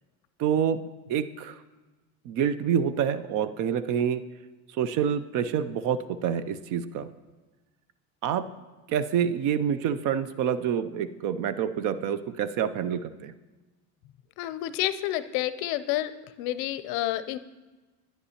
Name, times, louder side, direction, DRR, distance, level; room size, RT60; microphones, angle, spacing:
voice 1, 0.4-0.8 1.1-1.6 2.3-4.2 4.8-7.1 8.2-8.5 8.9-13.3, right 8 dB, 50° right, 14 dB, 0.5 m, -27 dB
voice 2, 14.4-16.1 16.4-17.4, left 14 dB, 65° left, 14 dB, 0.5 m, -29 dB
10.0 x 9.7 x 2.9 m, 1.2 s
cardioid pair, 130°, 41 cm